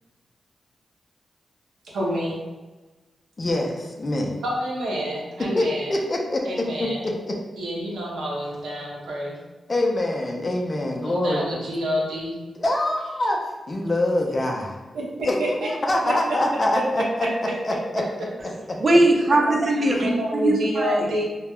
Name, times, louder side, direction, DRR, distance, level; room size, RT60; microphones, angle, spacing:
voice 1, 1.9-2.4 4.4-5.9 6.4-7.0 7.6-9.3 11.0-12.3 15.2-15.3 20.0-21.2, equal, 90° right, -4 dB, 0.7 m, -28 dB
voice 2, 3.4-4.4 5.6-7.4 9.7-11.4 12.6-14.8 15.2-17.3 17.6-18.0 18.7-18.8 19.9-20.0, left 1 dB, 40° left, 0 dB, 0.5 m, -25 dB
voice 3, 18.8-21.2, right 1 dB, 50° right, 1 dB, 0.5 m, -20 dB
2.3 x 2.0 x 3.4 m, 1.2 s
cardioid pair, 50°, 0 cm